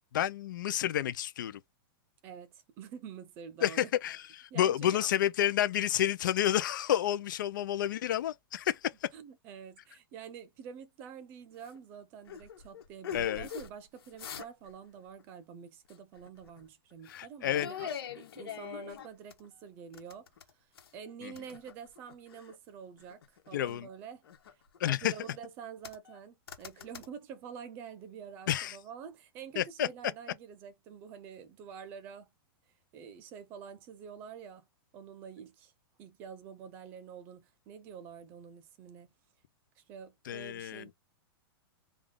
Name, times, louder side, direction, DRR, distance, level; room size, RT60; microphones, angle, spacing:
voice 1, 0.1-1.6 3.6-9.1 13.1-13.5 17.1-17.7 21.2-21.3 23.5-23.9 24.8-25.1 28.5-28.8 29.6-29.9 40.3-40.9, left 11 dB, 55° left, 0.5 m, -30 dB
voice 2, 2.2-3.9 4.5-5.1 9.1-24.3 24.5-32.3 32.9-34.7 34.9-35.7 36.0-39.1 39.8-40.9, right 7 dB, 15° right, 0.3 m, -47 dB
sound 1, 11.6-11.8 12.3-13.7 14.0-14.7 15.0-15.2 15.9-16.6 17.1-17.2 17.5-19.5 19.9-21.0 21.4-22.5 23.0-23.8 24.2-25.3 25.8-26.2 26.5-27.1, left 8 dB, 75° left, 1.2 m, -43 dB
3.5 x 2.4 x 3.6 m
supercardioid pair, 180°, 13 cm